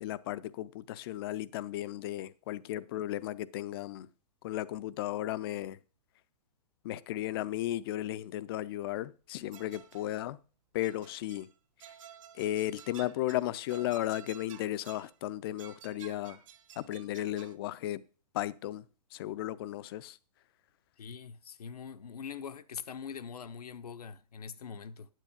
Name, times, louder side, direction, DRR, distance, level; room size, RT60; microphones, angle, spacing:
voice 1, 0.0-4.1 4.4-5.8 6.8-10.4 10.7-11.5 12.4-16.4 16.8-18.0 18.3-18.9 19.1-20.2, left 14 dB, 35° left, 0.5 m, -35 dB
sound 1, 9.5-10.2 10.8-11.5 11.8-15.1 15.6-17.6, right 10 dB, 50° right, 1.1 m, -53 dB
voice 2, 21.0-25.1, left 6 dB, 65° left, 0.8 m, -43 dB
9.2 x 8.2 x 5.2 m
figure-of-eight pair, 120°, 21 cm